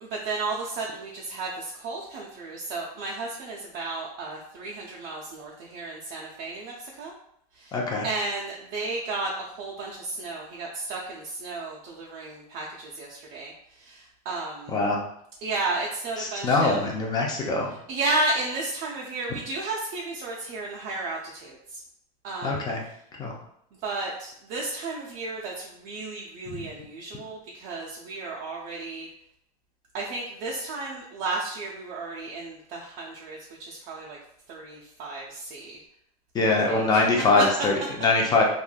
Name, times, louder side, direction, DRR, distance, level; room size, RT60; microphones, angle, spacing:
voice 1, 0.0-7.1 7.6-7.8 8.0-13.5 13.8-14.7 15.4-16.9 17.9-21.6 22.2-22.7 23.8-29.1 29.9-34.2 34.5-35.8 36.7-37.0 37.4-37.5, right 2 dB, 40° right, -2 dB, 0.5 m, -33 dB
voice 2, 7.7-8.1 14.7-15.0 16.2-17.7 22.4-22.8 23.2-23.4 26.5-26.7 36.3-38.4, left 3 dB, 20° left, 0 dB, 0.5 m, -23 dB
3.2 x 2.5 x 2.2 m, 0.71 s
supercardioid pair, 130°, 20 cm